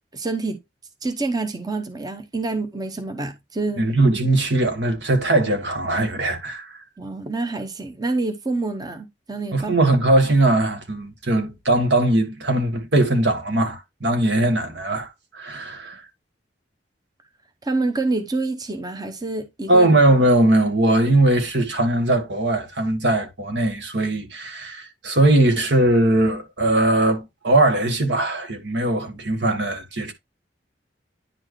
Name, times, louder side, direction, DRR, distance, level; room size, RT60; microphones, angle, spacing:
voice 1, 0.1-0.6 1.0-3.9 7.0-9.7 17.6-19.9, right 3 dB, 20° right, 0.8 m, -27 dB
voice 2, 3.8-6.8 9.5-16.0 19.7-30.1, right 2 dB, 75° right, 1.7 m, -20 dB
9.8 x 4.5 x 3.1 m
head